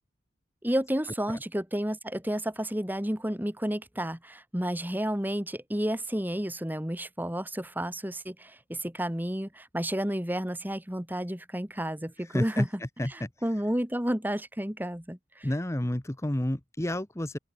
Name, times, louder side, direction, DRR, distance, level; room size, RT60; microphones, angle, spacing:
voice 1, 0.6-12.7 13.1-15.5, equal, 10° right, 1.9 m, -31 dB
voice 2, 12.3-12.7 13.0-13.3 15.4-17.4, left 1 dB, 15° left, 0.9 m, -30 dB
open air
head